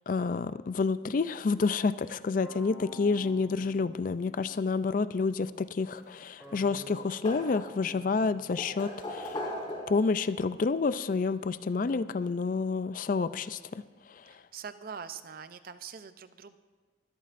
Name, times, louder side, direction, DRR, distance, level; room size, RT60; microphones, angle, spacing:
voice 1, 0.1-9.4 9.9-13.6 14.1-14.3, left 4 dB, 45° left, 14 dB, 0.4 m, -29 dB
sound 1, 2.4-4.7 6.4-8.8, left 1 dB, ahead, 4.5 m, -50 dB
sound 2, 5.9-6.6 6.9-8.0 8.5-10.2 11.4-11.5 13.0-13.1 13.4-13.5, left 1 dB, 25° left, 3.4 m, -38 dB
voice 2, 14.5-16.6, right 6 dB, 50° right, 12 dB, 0.5 m, -43 dB
22.0 x 12.5 x 2.6 m, 1.5 s
head